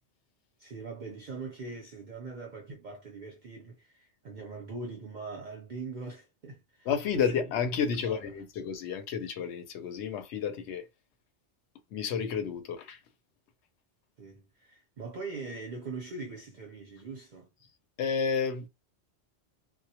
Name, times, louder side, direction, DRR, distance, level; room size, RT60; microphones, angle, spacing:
voice 1, 0.6-7.4 8.0-8.2 14.2-17.5, right 3 dB, 50° right, 0.6 m, -42 dB
voice 2, 6.9-10.9 11.9-13.0 18.0-18.7, left 6 dB, 75° left, 0.8 m, -31 dB
2.1 x 2.1 x 2.7 m
omnidirectional pair, 1.2 m